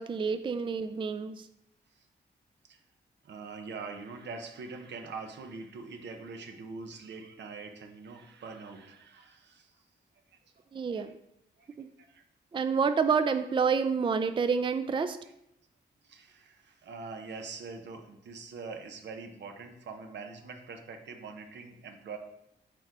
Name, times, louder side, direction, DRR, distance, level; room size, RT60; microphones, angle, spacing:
voice 1, 0.0-1.5 10.7-11.2 11.8-11.9 12.5-15.2, right 5 dB, 30° right, 10 dB, 0.4 m, -28 dB
voice 2, 3.2-9.8 11.6-11.7 12.0-12.2 16.0-22.2, right 4 dB, 85° right, 5 dB, 0.9 m, -43 dB
6.8 x 3.8 x 4.7 m, 0.80 s
wide cardioid pair, 100°, 18 cm